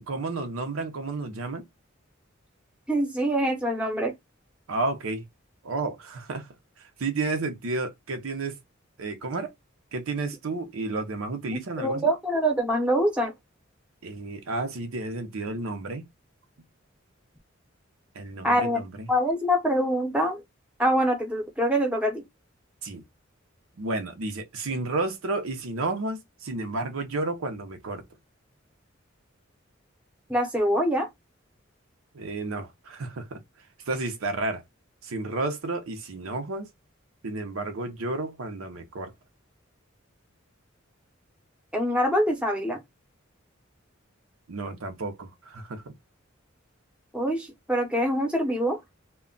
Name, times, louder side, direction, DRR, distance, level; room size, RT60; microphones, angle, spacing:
voice 1, 0.0-1.6 4.7-5.2 5.6-6.5 7.0-8.6 9.0-9.5 9.9-12.1 14.0-16.1 18.2-19.1 22.8-23.0 23.8-28.0 32.1-33.4 33.9-34.6 35.0-36.7 37.2-39.1 44.5-45.8, right 3 dB, 90° right, 0.6 m, -31 dB
voice 2, 2.9-4.1 11.8-13.3 18.4-18.8 19.1-20.4 20.8-22.2 30.3-31.1 41.7-42.8 47.1-48.8, equal, 5° right, 0.6 m, -24 dB
2.2 x 2.1 x 3.7 m
head